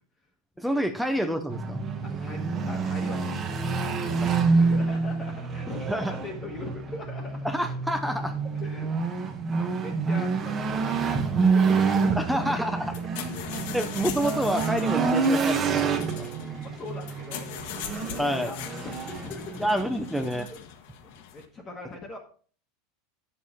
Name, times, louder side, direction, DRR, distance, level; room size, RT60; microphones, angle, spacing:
voice 1, 0.6-1.8 4.2-4.3 5.9-6.1 7.4-8.4 12.2-12.9 13.7-16.3 18.2-18.5 19.6-20.5, equal, ahead, 7 dB, 0.5 m, -28 dB
sound 1, 1.5-20.5, right 4 dB, 20° right, 1.0 m, -27 dB
voice 2, 2.0-3.8 4.5-7.4 8.6-9.2 9.5-12.2 12.9-13.0 16.5-19.6 20.5-20.6 21.0-22.2, left 3 dB, 20° left, 1 dB, 1.3 m, -41 dB
sound 2, 12.8-21.5, left 9 dB, 60° left, 1.2 m, -41 dB
9.2 x 7.1 x 4.2 m, 0.42 s
supercardioid pair, 170°, 0 cm